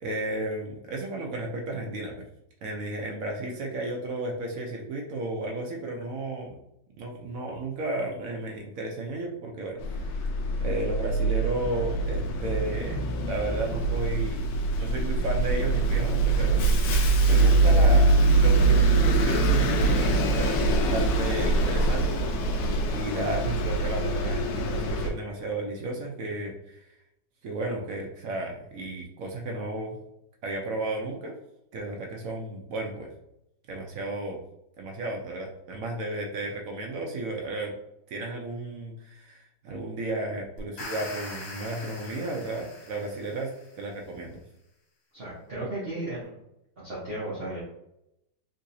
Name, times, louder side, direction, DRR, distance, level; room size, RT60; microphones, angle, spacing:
voice 1, 0.0-2.2 2.6-6.5 7.0-10.3 10.6-14.4 14.8-22.2 22.9-26.8 27.4-30.0 30.4-31.3 31.7-33.1 33.7-34.4 34.8-37.7 38.1-44.4, right 2 dB, 65° right, 1 dB, 0.9 m, -33 dB
Bus, 9.8-25.1, right 3 dB, 90° left, 1.2 m, -23 dB
sound 1, 40.6-43.8, left 2 dB, 55° left, 1.1 m, -42 dB
voice 2, 45.1-46.4 46.8-47.6, right 1 dB, 40° right, -8 dB, 1.0 m, -35 dB
3.9 x 2.7 x 2.6 m, 0.81 s
omnidirectional pair, 1.9 m